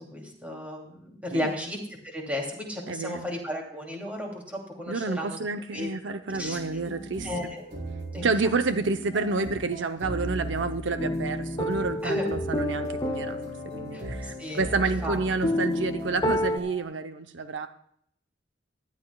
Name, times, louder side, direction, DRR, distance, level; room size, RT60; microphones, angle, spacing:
voice 1, 0.1-1.8 2.1-5.4 5.7-6.6 7.2-7.6 8.1-8.3 12.0-12.3 13.9-14.0 14.4-14.6 15.0-15.2, left 1 dB, 10° right, -1 dB, 2.6 m, -34 dB
voice 2, 2.9-3.3 4.9-7.5 8.2-17.7, right 3 dB, 75° right, 9 dB, 0.7 m, -29 dB
sound 1, 6.3-16.8, right 1 dB, 55° right, 3.8 m, -38 dB
sound 2, 11.0-16.6, left 1 dB, 20° left, 0.5 m, -30 dB
18.5 x 12.0 x 2.3 m, 0.67 s
head